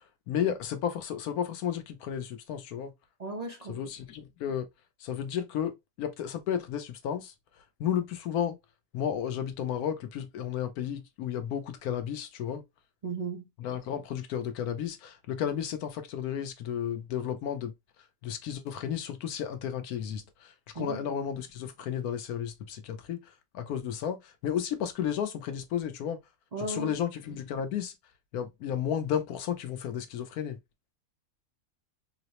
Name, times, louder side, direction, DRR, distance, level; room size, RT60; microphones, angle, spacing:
voice 1, 0.3-2.9 3.7-4.7 5.0-7.3 7.8-8.6 8.9-12.6 13.6-17.7 18.2-26.2 26.6-27.9 28.3-30.6, left 9 dB, 85° left, 1.2 m, -33 dB
voice 2, 3.2-3.8 13.0-13.4 20.8-21.0 26.5-27.0, right 3 dB, 55° right, 0.4 m, -35 dB
3.9 x 2.0 x 2.8 m
omnidirectional pair, 1.5 m